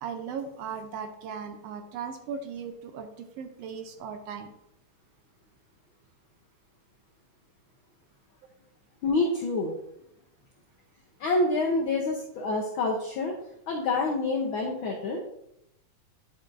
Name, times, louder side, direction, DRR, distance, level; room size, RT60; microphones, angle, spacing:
voice 1, 0.0-4.5, right 6 dB, 75° right, 6 dB, 1.5 m, -37 dB
voice 2, 9.0-9.8 11.2-13.3 13.7-15.2, left 3 dB, 85° left, 0 dB, 1.1 m, -27 dB
10.0 x 5.3 x 2.5 m, 0.78 s
omnidirectional pair, 3.3 m